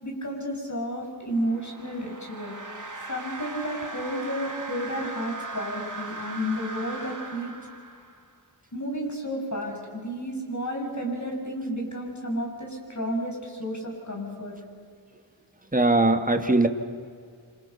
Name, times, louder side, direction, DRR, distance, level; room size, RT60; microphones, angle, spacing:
voice 1, 0.0-2.6 3.1-7.5 8.7-14.6, equal, 35° left, 1 dB, 7.0 m, -32 dB
sound 1, 1.3-8.3, right 3 dB, 40° right, 3.0 m, -38 dB
voice 2, 15.7-16.7, right 2 dB, 15° right, 6 dB, 2.1 m, -20 dB
27.5 x 27.5 x 6.0 m, 2.1 s
wide cardioid pair, 50°, 46 cm